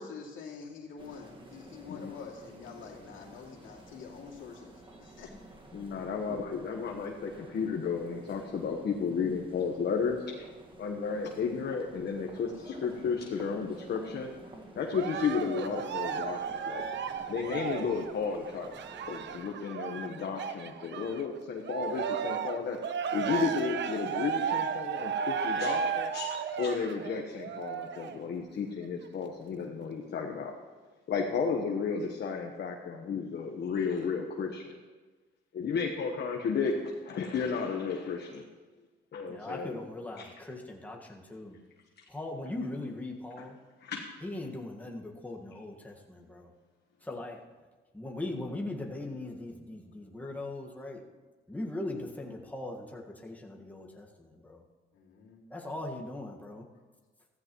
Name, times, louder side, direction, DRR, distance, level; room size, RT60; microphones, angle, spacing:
voice 1, 0.0-5.3 12.5-12.8 13.3-13.4 17.1-17.5 54.9-55.4, left 5 dB, 80° left, -2 dB, 2.6 m, -46 dB
sound 1, 1.0-19.4, right 2 dB, 25° right, 1.8 m, -52 dB
voice 2, 5.7-10.5 10.8-12.5 12.8-14.3 14.7-16.8 17.3-18.7 19.1-22.8 23.1-26.3 26.6-30.5 31.1-34.7 35.5-36.7 37.1-38.4 39.1-39.8 40.2-40.3 43.8-44.1, left 5 dB, 60° left, 2 dB, 1.2 m, -33 dB
Cheering, 14.9-21.2 21.6-28.2 28.8-28.9, right 7 dB, 65° right, 0.9 m, -34 dB
voice 3, 39.3-41.6 42.1-43.5 44.2-46.5 47.0-47.4 47.9-51.0 51.5-54.6 55.5-56.6, left 2 dB, 10° left, -1 dB, 1.7 m, -39 dB
15.0 x 14.5 x 3.1 m, 1.3 s
cardioid pair, 90°, 20 cm